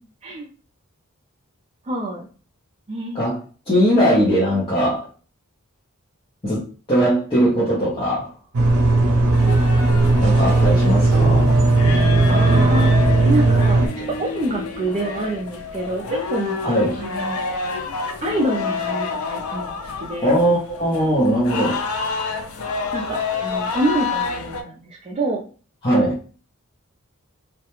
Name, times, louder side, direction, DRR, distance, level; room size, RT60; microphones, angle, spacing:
voice 1, 1.9-2.3 2.9-3.2 12.3-12.9 13.2-13.8 14.2-16.7 17.0-17.4 18.2-19.7 20.0-20.3 22.9-25.4, right 1 dB, 30° right, 0 dB, 0.3 m, -26 dB
voice 2, 3.1-5.1 6.4-8.3 10.2-11.5 16.6-17.0 20.2-21.8 25.8-26.2, equal, 25° left, -8 dB, 0.7 m, -20 dB
sound 1, 8.5-13.9, right 2 dB, 85° right, 0.6 m, -16 dB
sound 2, 9.3-24.6, left 5 dB, 70° left, 0.4 m, -29 dB
sound 3, 10.5-15.4, equal, 5° left, 1.1 m, -32 dB
2.3 x 2.1 x 2.9 m, 0.38 s
head